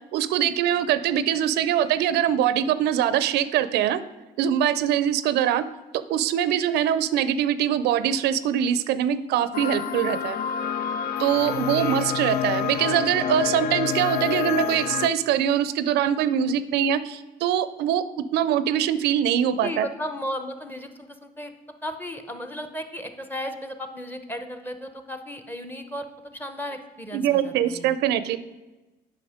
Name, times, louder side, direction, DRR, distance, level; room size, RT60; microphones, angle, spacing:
voice 1, 0.1-4.0 4.4-5.6 6.1-10.4 11.2-18.0 18.3-19.9 27.1-28.4, right 10 dB, 80° right, 15 dB, 0.5 m, -23 dB
sound 1, 9.5-15.1, left 9 dB, 70° left, 0.5 m, -28 dB
voice 2, 11.5-12.0 16.6-16.9 19.6-21.5 21.8-26.1 26.3-28.0, equal, 10° left, 8 dB, 0.8 m, -35 dB
8.6 x 5.7 x 5.0 m, 1.1 s
cardioid pair, 110°, 17 cm